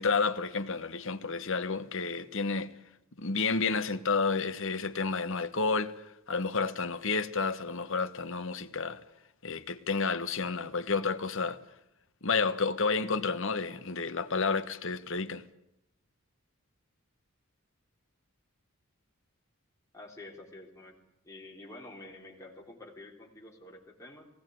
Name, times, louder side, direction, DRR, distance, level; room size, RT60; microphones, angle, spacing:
voice 1, 0.0-2.7 3.2-5.9 6.3-9.0 9.4-11.6 12.2-15.4, left 4 dB, 65° left, 1.3 m, -30 dB
voice 2, 19.9-21.0 21.2-24.3, left 2 dB, 15° left, 3.7 m, -48 dB
20.5 x 18.0 x 9.3 m
head